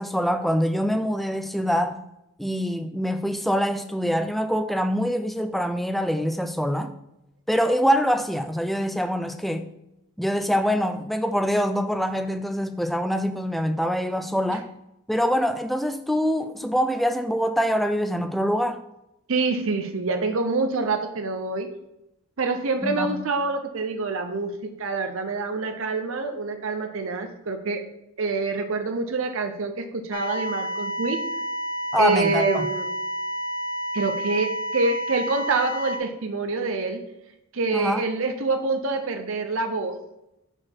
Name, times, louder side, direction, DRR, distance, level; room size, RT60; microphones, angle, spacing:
voice 1, 0.0-2.0 2.4-6.9 7.5-9.7 10.2-14.7 15.1-18.8 22.8-23.2 31.9-32.7 37.7-38.0, equal, ahead, 7 dB, 0.3 m, -24 dB
voice 2, 19.3-21.7 22.4-27.8 28.2-31.2 32.0-32.9 33.9-37.0 37.5-40.0, right 3 dB, 65° right, 6 dB, 0.7 m, -26 dB
sound 1, 30.1-36.0, equal, 60° left, 0.8 m, -30 dB
4.9 x 4.2 x 5.9 m, 0.88 s
head